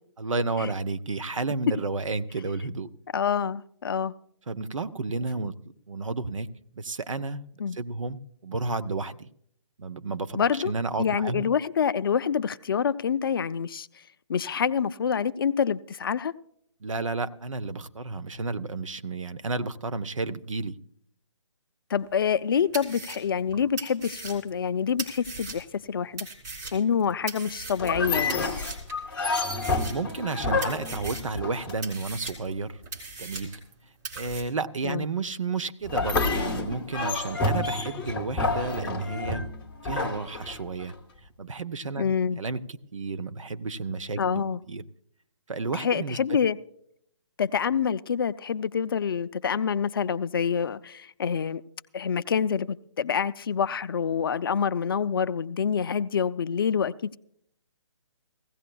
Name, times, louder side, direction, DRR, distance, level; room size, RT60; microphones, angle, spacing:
voice 1, 0.2-2.9 4.5-5.5 5.9-6.5 6.8-7.4 7.7-9.3 9.8-11.5 16.8-20.8 29.8-32.8 33.2-33.6 34.2-39.4 39.8-40.9 41.4-42.0 42.4-42.6 42.9-44.8 45.5-46.2, right 3 dB, 80° right, 0.7 m, -32 dB
voice 2, 3.1-4.1 7.6-7.8 10.4-10.7 11.0-13.9 14.3-16.3 21.9-26.3 26.7-28.5 34.8-35.0 42.0-42.4 44.2-44.6 45.8-46.6 47.4-51.6 51.9-57.2, left 7 dB, 45° left, 0.4 m, -26 dB
sound 1, 22.2-22.3 22.7-25.8 26.2-28.0 28.3-29.0 29.4-30.3 30.6-31.4 31.8-33.7 34.0-34.4, right 3 dB, 35° right, 2.9 m, -39 dB
sound 2, 27.8-32.1 35.8-40.9, left 3 dB, 10° left, 0.7 m, -29 dB
19.0 x 16.0 x 2.3 m
figure-of-eight pair, 145°, 16 cm